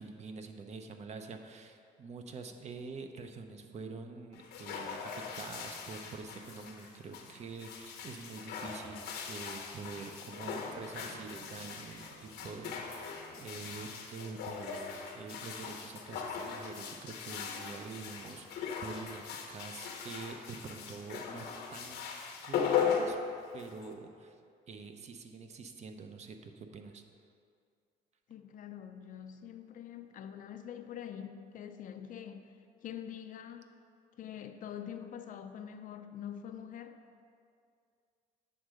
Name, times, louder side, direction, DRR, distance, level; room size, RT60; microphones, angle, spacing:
voice 1, 0.0-22.1 22.4-23.2 23.5-24.4 24.7-27.0, right 4 dB, 40° right, 6 dB, 0.7 m, -46 dB
sound 1, 4.3-23.9, left 6 dB, 80° left, 0.9 m, -39 dB
Bowed string instrument, 10.2-14.0, right 2 dB, 70° right, 1.5 m, -58 dB
voice 2, 28.3-32.5 32.8-33.7 34.2-37.0, left 9 dB, 50° left, 8 dB, 0.5 m, -45 dB
8.0 x 3.6 x 6.3 m, 2.3 s
cardioid pair, 110°, 17 cm